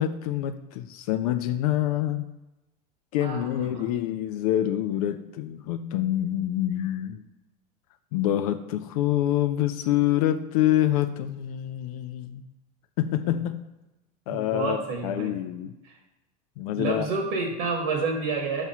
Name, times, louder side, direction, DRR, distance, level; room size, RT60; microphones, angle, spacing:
voice 1, 0.0-2.3 3.1-7.2 8.1-12.4 13.0-13.6 14.3-15.7 16.6-17.1, left 12 dB, 70° left, 9 dB, 0.4 m, -26 dB
voice 2, 3.2-3.9 13.2-13.4 14.3-15.3 15.8-15.9 16.8-18.6, right 4 dB, 65° right, 1 dB, 1.2 m, -29 dB
5.9 x 3.0 x 5.5 m, 1.0 s
supercardioid pair, 175°, 20 cm